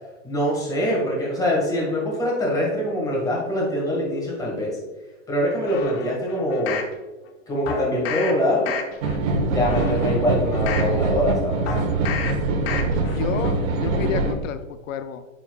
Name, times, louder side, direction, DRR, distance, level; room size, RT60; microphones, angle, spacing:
voice 1, 0.2-4.8 5.3-6.8 7.5-8.7 9.5-11.6, left 1 dB, 10° left, -3 dB, 1.7 m, -24 dB
sound 1, 5.7-6.9 7.7-8.3 8.6-9.2 9.6-10.9 11.7-12.3 12.7-13.2 13.6-13.7, left 6 dB, 50° left, 0.9 m, -31 dB
sound 2, 9.0-14.3, right 3 dB, 80° right, 1.1 m, -23 dB
voice 2, 13.1-15.3, left 9 dB, 80° left, 10 dB, 0.5 m, -31 dB
9.1 x 4.4 x 2.3 m, 1.2 s
hypercardioid pair, 150°, 39 cm